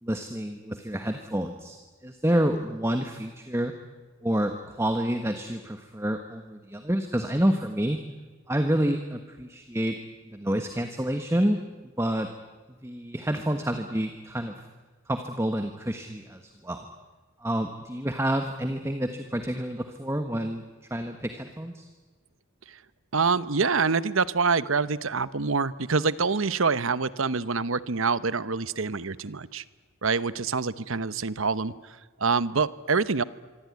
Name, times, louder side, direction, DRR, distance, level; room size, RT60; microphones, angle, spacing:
voice 1, 0.0-1.8 2.0-3.7 4.2-8.0 8.5-10.0 10.3-11.6 12.0-12.3 12.8-14.6 15.1-16.9 17.4-20.6 20.9-21.9, right 1 dB, 10° right, 6 dB, 1.3 m, -28 dB
voice 2, 23.1-29.6 30.0-33.2, right 4 dB, 70° right, 16 dB, 1.0 m, -26 dB
25.0 x 25.0 x 9.6 m, 1.3 s
head